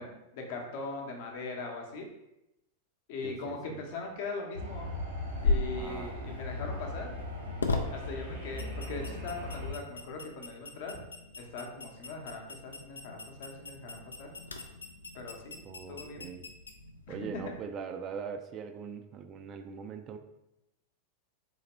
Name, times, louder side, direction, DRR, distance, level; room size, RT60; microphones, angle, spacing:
voice 1, 0.0-2.1 3.1-4.9 5.4-7.1 7.9-11.0 11.4-14.3 15.1-15.6 15.9-16.3 17.1-17.2, left 3 dB, 50° left, 1 dB, 0.7 m, -40 dB
voice 2, 3.2-3.8 5.7-6.2 15.6-16.5 17.1-20.2, right 6 dB, 30° right, 7 dB, 0.3 m, -41 dB
sound 1, 4.5-9.7, left 1 dB, 70° right, 1.0 m, -39 dB
sound 2, 5.3-17.6, left 3 dB, 75° left, 0.3 m, -38 dB
4.0 x 2.8 x 2.9 m, 0.89 s
figure-of-eight pair, 90°, 0 cm